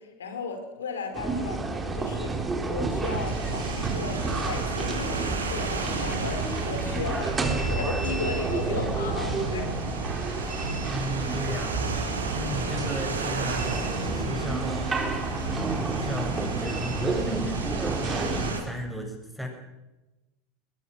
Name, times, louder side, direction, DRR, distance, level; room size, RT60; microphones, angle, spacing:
voice 1, 0.0-9.8 10.2-10.3, left 4 dB, 80° left, 6 dB, 4.8 m, -36 dB
sound 1, 1.1-18.5, right 3 dB, 20° right, 4.2 m, -30 dB
sound 2, 3.0-18.6, right 4 dB, 90° right, 3.8 m, -33 dB
voice 2, 10.8-14.8 15.4-19.5, equal, ahead, 2 dB, 7.0 m, -35 dB
22.0 x 21.0 x 6.3 m, 1.1 s
hypercardioid pair, 85°, 0 cm